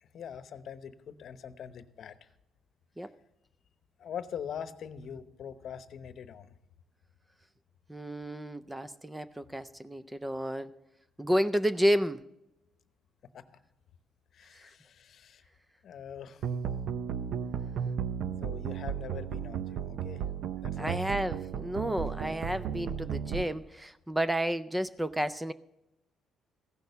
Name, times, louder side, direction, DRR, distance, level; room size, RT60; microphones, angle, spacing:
voice 1, 0.0-2.3 4.0-6.5 13.3-13.5 14.3-15.4 15.8-16.5 18.4-20.2 20.6-21.0, left 8 dB, 60° left, 12 dB, 0.9 m, -43 dB
voice 2, 7.9-10.7 11.2-12.2 14.6-14.7 20.8-25.5, equal, 10° right, 14 dB, 0.4 m, -31 dB
sound 1, 16.4-23.4, right 8 dB, 70° right, 0.6 m, -34 dB
15.5 x 6.4 x 6.8 m, 0.89 s
cardioid pair, 110°, 0 cm